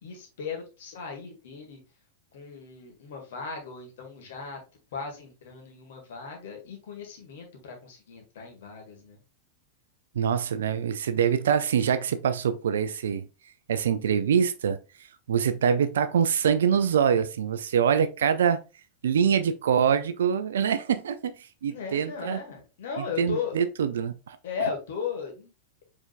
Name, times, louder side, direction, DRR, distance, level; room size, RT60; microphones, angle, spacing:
voice 1, 0.0-1.8 2.3-4.6 4.9-9.2 21.7-23.6 24.4-25.5, left 6 dB, 55° left, 1.5 m, -36 dB
voice 2, 10.2-13.2 13.7-14.8 15.3-18.6 19.0-21.4 21.6-22.4 23.2-24.4, right 7 dB, 65° right, 0.4 m, -24 dB
4.9 x 3.6 x 2.4 m
figure-of-eight pair, 90°, 0 cm